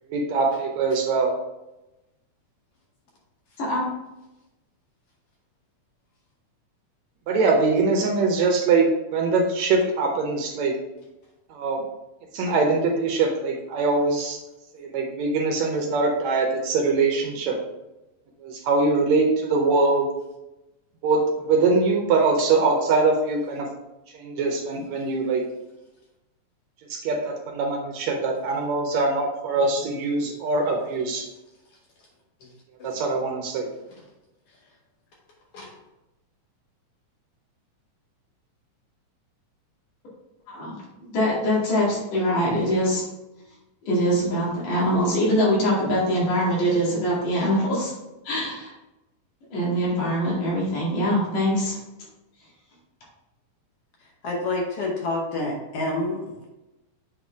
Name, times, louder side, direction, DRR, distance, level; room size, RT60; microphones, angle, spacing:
voice 1, 0.1-1.3 7.3-10.7 11.5-11.8 12.3-14.4 14.7-17.6 18.4-20.1 21.0-23.7 24.1-25.5 26.9-31.3 32.8-33.7, right 3 dB, 75° right, 1 dB, 1.8 m, -23 dB
voice 2, 29.9-30.3 32.4-32.5 32.8-32.9 35.5-35.7 54.2-56.5, left 2 dB, 65° left, -1 dB, 1.5 m, -29 dB
voice 3, 40.5-43.0 43.9-47.9 48.3-48.7 49.5-51.8, equal, 85° left, -6 dB, 3.8 m, -23 dB
7.8 x 4.1 x 3.5 m, 0.98 s
omnidirectional pair, 3.6 m